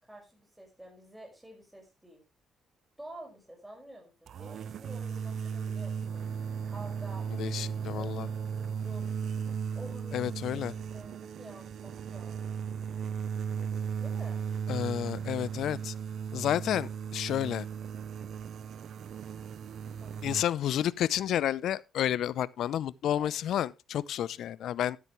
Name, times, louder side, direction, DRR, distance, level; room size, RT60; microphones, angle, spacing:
voice 1, 0.0-2.2 3.0-6.2 6.7-9.1 9.7-10.4 10.7-13.0 14.0-14.4 20.0-20.3 23.2-23.4, right 1 dB, 10° right, 5.6 m, -50 dB
sound 1, 4.3-20.4, right 7 dB, 65° right, 0.5 m, -36 dB
voice 2, 7.4-8.3 10.1-10.7 14.7-15.9 16.3-17.7 20.2-25.0, left 11 dB, 75° left, 0.6 m, -30 dB
12.5 x 10.5 x 3.1 m
cardioid pair, 90°, 0 cm